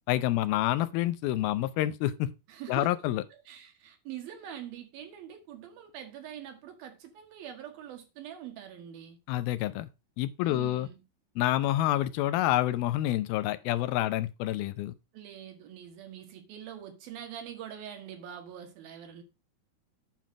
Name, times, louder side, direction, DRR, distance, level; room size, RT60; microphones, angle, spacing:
voice 1, 0.1-2.3 2.7-3.2 9.3-9.9 10.2-10.9 11.4-14.9, left 14 dB, 85° left, 2.5 m, -28 dB
voice 2, 2.5-2.9 3.5-9.2 10.4-11.0 15.1-19.2, right 10 dB, 75° right, 3.5 m, -44 dB
9.2 x 5.9 x 4.8 m
omnidirectional pair, 4.3 m